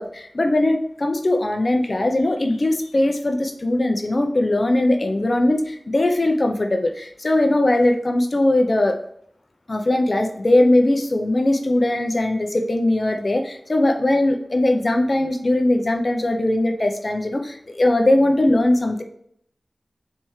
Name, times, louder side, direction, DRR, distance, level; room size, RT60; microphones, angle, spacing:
voice 1, 0.0-9.0 9.7-19.0, left 1 dB, 45° left, 5 dB, 0.6 m, -20 dB
4.3 x 3.4 x 3.1 m, 0.67 s
wide cardioid pair, 65°, 0 cm